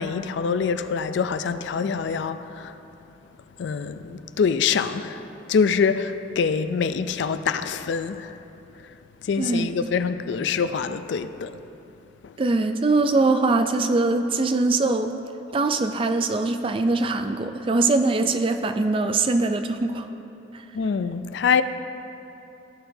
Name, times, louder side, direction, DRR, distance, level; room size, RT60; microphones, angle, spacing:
voice 1, 0.0-2.8 3.6-8.4 8.8-9.0 9.2-11.6 12.2-12.3 20.7-21.6, left 6 dB, 65° left, 0.3 m, -25 dB
voice 2, 9.4-9.7 12.4-15.1 15.5-20.1, right 3 dB, 25° right, 0.3 m, -22 dB
15.0 x 6.8 x 2.7 m
head